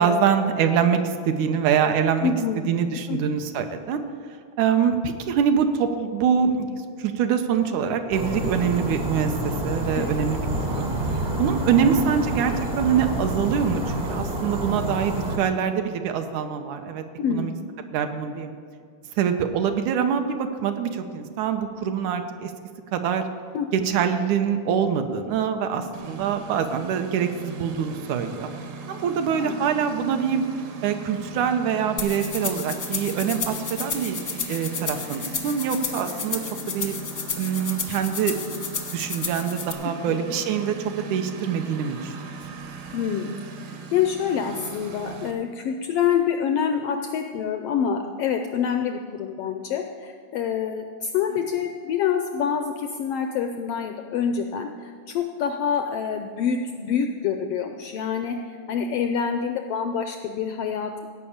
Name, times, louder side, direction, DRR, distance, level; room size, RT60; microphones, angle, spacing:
voice 1, 0.0-2.3 2.7-4.0 4.6-9.3 9.6-10.4 10.8-10.9 11.4-17.0 17.3-17.5 17.9-18.5 19.2-22.5 22.9-23.2 23.7-28.5 28.9-30.4 30.8-36.4 36.7-37.0 37.4-38.4 38.9-42.1, right 7 dB, 80° right, 6 dB, 2.2 m, -24 dB
voice 2, 2.2-2.6 3.1-3.2 9.9-10.2 17.2-17.5 23.5-23.9 29.4-29.6 40.0-40.2 42.9-43.3 43.9-61.1, left 7 dB, 85° left, 6 dB, 1.3 m, -26 dB
sound 1, 8.1-15.4, right 1 dB, 40° right, 0.6 m, -28 dB
Engine, 25.9-45.3, right 3 dB, 60° right, 1.6 m, -39 dB
sound 2, 32.0-39.7, left 6 dB, 65° left, 0.9 m, -32 dB
16.5 x 5.6 x 8.6 m, 2.2 s
omnidirectional pair, 3.4 m